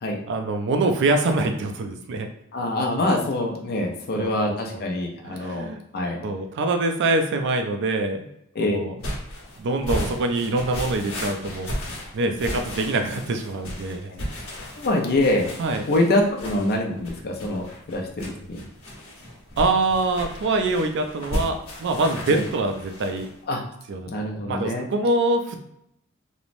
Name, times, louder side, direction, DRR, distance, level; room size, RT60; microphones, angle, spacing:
voice 1, 0.3-2.3 4.1-4.8 5.2-5.8 6.2-8.3 8.6-8.9 9.6-11.7 12.1-14.1 15.6-15.9 19.6-23.3 23.9-24.1 24.4-25.6, right 2 dB, 60° right, 5 dB, 0.4 m, -24 dB
voice 2, 2.5-5.7 5.9-6.2 8.6-8.8 14.1-14.2 14.8-15.5 15.9-18.7 22.3-22.4 23.5-23.6 24.1-24.9, left 1 dB, 45° left, 0 dB, 0.5 m, -25 dB
sound 1, 9.0-23.3, equal, 75° left, 1.0 m, -34 dB
3.0 x 2.0 x 2.5 m, 0.76 s
head